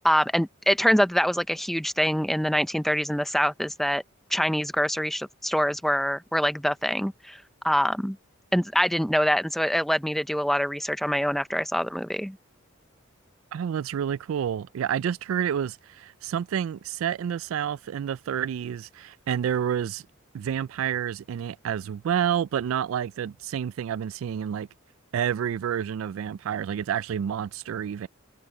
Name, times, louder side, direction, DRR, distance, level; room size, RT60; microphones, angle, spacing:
voice 1, 0.0-4.0 4.3-8.2 8.5-12.4, equal, ahead, 0.6 m, -25 dB
voice 2, 13.5-20.0 20.3-24.7 25.1-28.1, right 9 dB, 85° right, 0.3 m, -29 dB
head